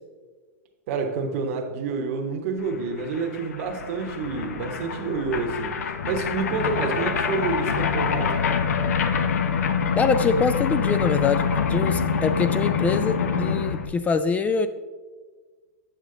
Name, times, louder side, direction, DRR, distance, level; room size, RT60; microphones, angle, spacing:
voice 1, 0.9-5.8 6.0-8.5, right 4 dB, 55° right, 3 dB, 1.1 m, -28 dB
sound 1, 2.7-2.8 3.0-13.9, left 6 dB, 75° left, 0.7 m, -25 dB
voice 2, 9.9-14.7, left 5 dB, 15° left, 11 dB, 0.3 m, -24 dB
8.1 x 6.1 x 3.8 m, 1.4 s
hypercardioid pair, 115°, 8 cm